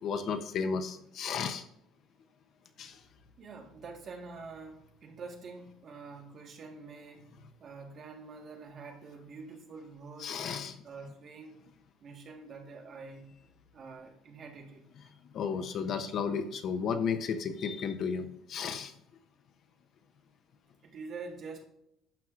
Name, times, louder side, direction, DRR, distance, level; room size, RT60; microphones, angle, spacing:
voice 1, 0.0-1.6 2.8-3.0 10.2-10.8 15.3-18.9, left 6 dB, 45° left, 8 dB, 0.7 m, -33 dB
voice 2, 3.4-10.4 10.8-11.5 12.0-13.3 13.7-14.8 20.8-21.7, right 4 dB, 35° right, 2 dB, 1.5 m, -46 dB
11.5 x 7.7 x 2.5 m, 0.77 s
cardioid pair, 165°, 0 cm